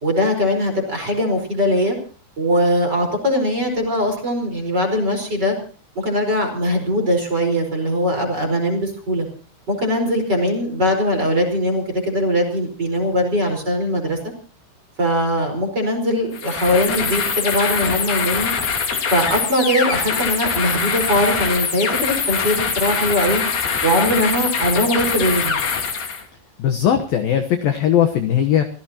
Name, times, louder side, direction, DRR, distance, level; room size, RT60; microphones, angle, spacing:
voice 1, 0.0-2.0 2.4-5.5 5.9-9.3 9.7-14.2 15.0-18.5 19.1-23.4 23.8-25.6, equal, 20° right, 4 dB, 4.7 m, -20 dB
sound 1, 16.3-26.2, left 6 dB, 55° left, 4.6 m, -23 dB
voice 2, 26.6-28.6, left 9 dB, 75° left, 6 dB, 2.1 m, -18 dB
26.5 x 16.5 x 2.9 m, 0.40 s
omnidirectional pair, 5.8 m